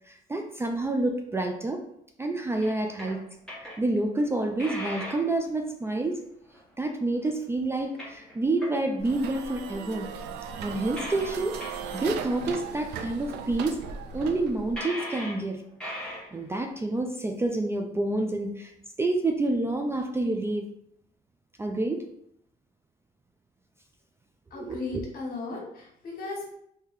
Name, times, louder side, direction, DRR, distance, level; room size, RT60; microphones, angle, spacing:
voice 1, 0.1-1.8 2.2-3.2 3.8-6.2 6.8-10.1 10.6-13.8 14.1-15.6 16.3-18.7 19.0-20.7 21.6-22.1 24.5-25.0, right 2 dB, 15° right, 4 dB, 0.3 m, -28 dB
sound 1, 2.6-3.2 3.5-4.0 4.6-5.4 6.5-6.6 7.6-9.0 9.6-10.1 10.9-11.3 11.6-11.8 12.4-12.5 13.2-13.3 13.5-13.6 13.8-13.9 14.8-15.4 15.7-16.5, left 1 dB, 5° left, 1.2 m, -38 dB
sound 2, 9.0-14.8, right 6 dB, 80° right, 0.4 m, -37 dB
voice 2, 24.5-26.5, left 3 dB, 55° left, -1 dB, 1.4 m, -36 dB
3.0 x 2.7 x 3.7 m, 0.73 s
cardioid pair, 110°, 17 cm